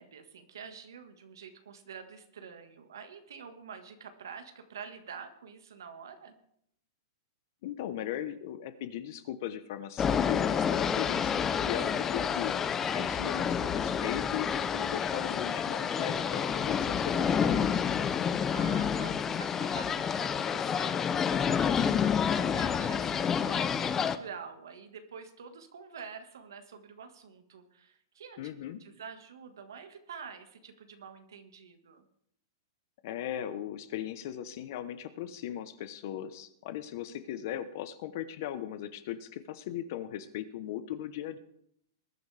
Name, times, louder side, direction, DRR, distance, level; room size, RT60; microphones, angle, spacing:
voice 1, 0.0-6.4 18.3-32.1 37.1-37.2, right 6 dB, 90° right, 7 dB, 1.6 m, -47 dB
voice 2, 7.6-12.6 12.9-18.0 28.4-28.8 33.0-41.4, left 11 dB, 55° left, 12 dB, 1.0 m, -38 dB
sound 1, 10.0-24.2, left 7 dB, 15° left, 0.6 m, -29 dB
21.0 x 9.9 x 3.4 m, 0.70 s
hypercardioid pair, 145°, 2 cm